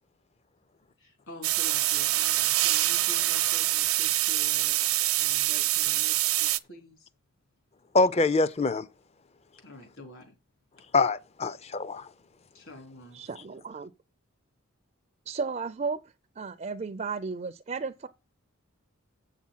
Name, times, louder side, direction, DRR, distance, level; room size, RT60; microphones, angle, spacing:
voice 1, 1.0-7.1 9.6-10.3 12.5-13.2, left 2 dB, 65° left, 3.8 m, -47 dB
sound 1, 1.4-6.6, right 16 dB, 75° right, 0.6 m, -25 dB
voice 2, 7.9-8.9 10.9-12.1, left 3 dB, 30° left, 0.5 m, -24 dB
voice 3, 13.1-13.9 15.3-16.0 16.4-18.1, right 4 dB, 30° right, 0.4 m, -34 dB
7.9 x 7.4 x 5.6 m
head